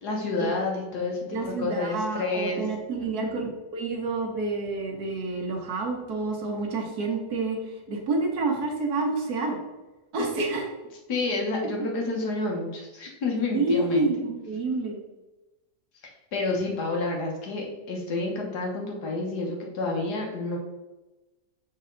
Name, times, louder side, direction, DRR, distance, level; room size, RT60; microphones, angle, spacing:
voice 1, 0.0-1.2 1.5-2.7 3.1-3.4 11.1-14.1 16.3-20.6, left 3 dB, 65° left, 0 dB, 1.7 m, -29 dB
voice 2, 1.3-3.4 3.7-7.6 7.9-9.6 10.1-10.7 11.7-11.9 13.5-15.0, right 3 dB, 60° right, 1 dB, 1.6 m, -28 dB
6.7 x 4.3 x 3.8 m, 1.1 s
omnidirectional pair, 1.9 m